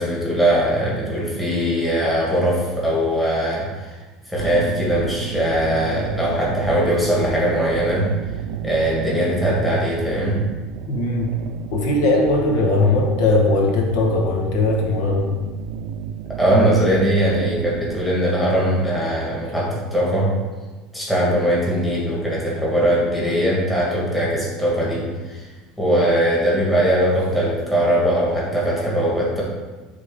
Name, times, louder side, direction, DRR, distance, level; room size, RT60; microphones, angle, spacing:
voice 1, 0.0-4.0 4.3-8.1 8.6-10.4 16.3-20.3 20.9-25.5 25.8-29.4, equal, 5° left, -6 dB, 1.7 m, -20 dB
sound 1, 4.4-17.9, right 9 dB, 60° right, 0.3 m, -32 dB
voice 2, 10.9-11.3 11.7-15.3, left 2 dB, 65° left, -1 dB, 1.4 m, -19 dB
11.0 x 3.7 x 3.7 m, 1.3 s
cardioid pair, 160°, 0 cm